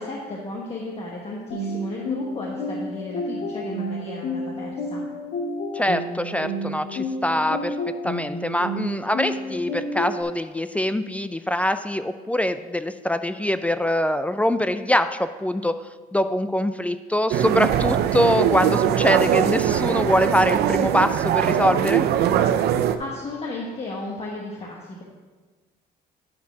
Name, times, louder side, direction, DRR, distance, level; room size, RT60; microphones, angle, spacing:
voice 1, 0.0-5.0 22.7-25.0, left 2 dB, 35° left, -3 dB, 1.3 m, -34 dB
sound 1, 1.5-10.2, left 1 dB, 80° left, 1.5 m, -30 dB
voice 2, 5.7-7.8 8.0-15.7 16.1-22.1, left 1 dB, 10° left, 11 dB, 0.3 m, -23 dB
sound 2, 17.3-23.0, right 10 dB, 70° right, 0.6 m, -21 dB
9.5 x 4.4 x 6.0 m, 1.3 s
cardioid pair, 110°, 17 cm